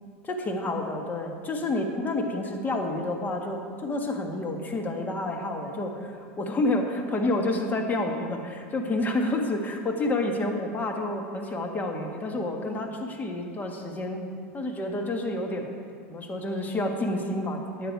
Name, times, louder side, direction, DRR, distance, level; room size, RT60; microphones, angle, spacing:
voice 1, 0.3-14.2 14.5-15.7 16.1-17.9, left 2 dB, 25° left, 2 dB, 1.7 m, -29 dB
12.5 x 9.2 x 4.7 m, 2.2 s
supercardioid pair, 110°, 7 cm